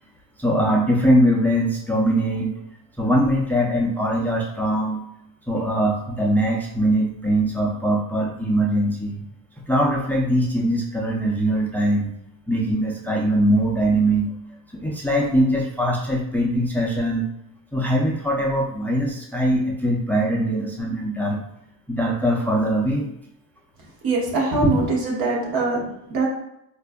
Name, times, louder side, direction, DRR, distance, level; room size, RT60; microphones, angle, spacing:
voice 1, 0.4-2.5 3.0-5.0 5.5-9.3 9.7-12.1 12.5-14.3 14.7-17.3 17.7-21.4 21.9-23.1 24.7-24.8, right 1 dB, 5° left, -2 dB, 0.4 m, -21 dB
voice 2, 24.0-26.3, right 3 dB, 70° right, -2 dB, 1.3 m, -23 dB
4.3 x 2.4 x 2.2 m, 0.78 s
cardioid pair, 105°, 37 cm